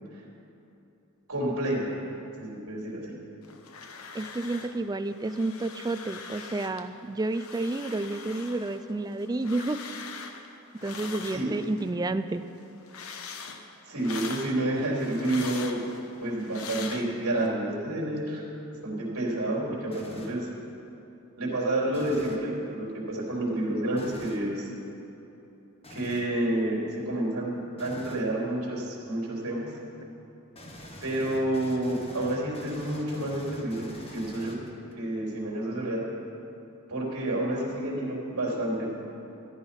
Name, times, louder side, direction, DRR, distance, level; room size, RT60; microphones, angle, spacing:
voice 1, 1.3-1.9 2.4-3.2 11.3-11.5 13.9-15.8 16.2-18.4 18.8-20.5 21.4-24.7 25.9-29.7 31.0-34.6 35.0-36.0 36.9-38.9, right 1 dB, 75° right, -3 dB, 3.5 m, -29 dB
sound 1, 3.4-4.8 5.1-6.9 7.2-11.9 12.3-17.5, left 5 dB, 70° left, 0.9 m, -42 dB
voice 2, 4.1-9.8 10.8-12.4, right 2 dB, 15° right, 10 dB, 0.3 m, -30 dB
sound 2, 19.9-20.5 21.9-22.5 24.0-24.4 25.8-26.3 27.8-28.3 30.5-34.9, left 1 dB, 25° left, 1.3 m, -45 dB
14.5 x 11.0 x 5.7 m, 3.0 s
head